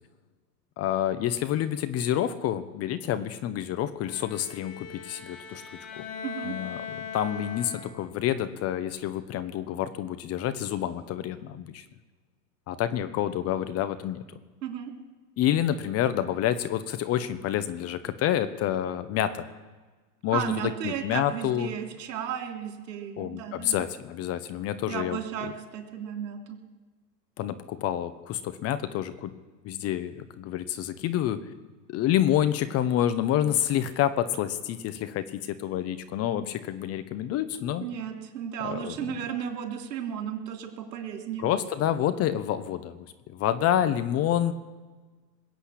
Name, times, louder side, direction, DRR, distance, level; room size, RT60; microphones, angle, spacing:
voice 1, 0.8-5.6 5.9-6.0 6.4-11.8 12.7-14.2 15.4-19.5 20.2-21.7 23.2-25.5 27.4-29.3 29.6-31.4 31.9-37.8 38.6-39.0 41.4-44.5, left 11 dB, 30° left, 12 dB, 1.0 m, -28 dB
Bowed string instrument, 4.0-8.2, left 7 dB, 85° left, 5.9 m, -40 dB
voice 2, 6.2-6.5 14.6-14.9 20.3-23.8 24.9-26.6 37.8-41.5, right 9 dB, 75° right, 3 dB, 3.2 m, -34 dB
21.0 x 8.1 x 8.4 m, 1.3 s
hypercardioid pair, 120°, 50 cm